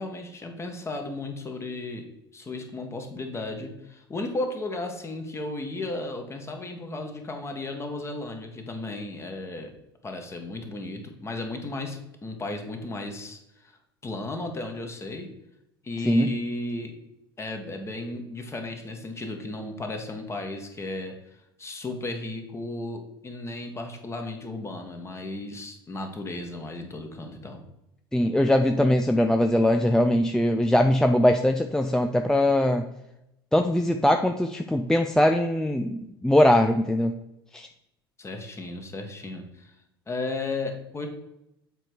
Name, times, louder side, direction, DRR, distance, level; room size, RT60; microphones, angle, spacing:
voice 1, 0.0-9.7 10.0-13.7 14.0-15.3 15.8-16.9 17.4-27.6 38.2-39.7 40.1-41.1, left 2 dB, 20° left, 4 dB, 1.5 m, -35 dB
voice 2, 28.1-32.9 33.5-37.2 37.5-37.7, left 1 dB, 5° left, 5 dB, 0.5 m, -21 dB
7.6 x 4.4 x 4.8 m, 0.85 s
hypercardioid pair, 80°, 13 cm